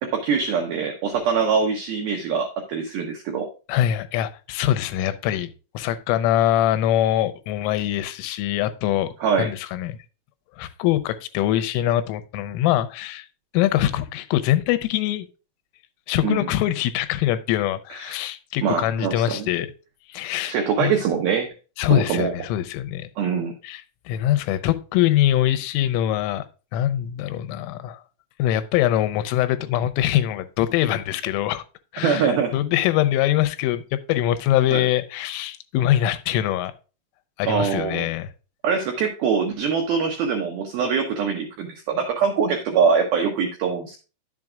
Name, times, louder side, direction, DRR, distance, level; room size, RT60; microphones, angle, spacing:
voice 1, 0.1-3.5 9.2-9.5 16.2-16.5 17.9-18.2 18.6-19.5 20.5-21.5 21.9-22.3 23.2-23.5 32.0-32.5 34.7-34.9 37.5-38.1 38.6-44.0, right 6 dB, 85° right, 2.1 m, -23 dB
voice 2, 3.7-10.0 10.6-13.3 13.5-15.3 16.1-19.7 20.1-20.5 20.8-20.9 21.8-23.1 23.6-26.4 26.7-28.0 28.4-31.6 31.9-36.7 37.4-38.3, left 12 dB, 90° left, 3.2 m, -23 dB
10.5 x 7.5 x 2.4 m
omnidirectional pair, 5.7 m